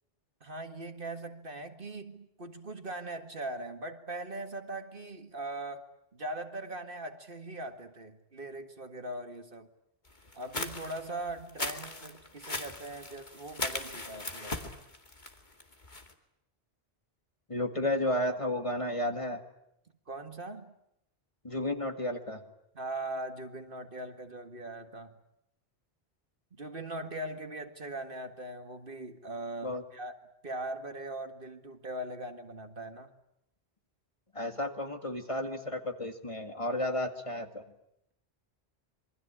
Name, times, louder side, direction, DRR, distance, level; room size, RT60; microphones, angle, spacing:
voice 1, 0.4-5.9 6.1-9.7 10.3-14.7 20.1-20.7 22.7-25.1 26.5-30.2 30.4-33.1, right 2 dB, 55° right, 7 dB, 2.1 m, -40 dB
sound 1, 10.3-16.1, left 2 dB, 45° left, 2.5 m, -38 dB
voice 2, 17.5-19.4 21.4-22.4 29.6-29.8 34.3-37.6, left 1 dB, 30° left, 6 dB, 2.1 m, -32 dB
27.5 x 23.5 x 8.8 m, 0.79 s
omnidirectional pair, 1.1 m